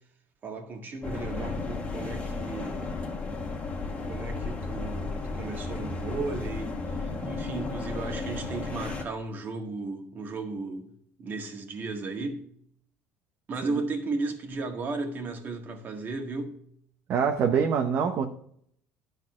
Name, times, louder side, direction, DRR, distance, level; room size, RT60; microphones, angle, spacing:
voice 1, 0.4-2.9 3.8-6.7 7.2-10.9 11.2-12.4 13.5-16.6, right 3 dB, 40° right, 1.7 m, -35 dB
sound 1, 1.0-9.0, left 3 dB, 25° left, 1.4 m, -34 dB
voice 2, 17.1-18.2, right 7 dB, 55° right, 0.8 m, -25 dB
11.0 x 4.0 x 6.1 m
cardioid pair, 110°, 5 cm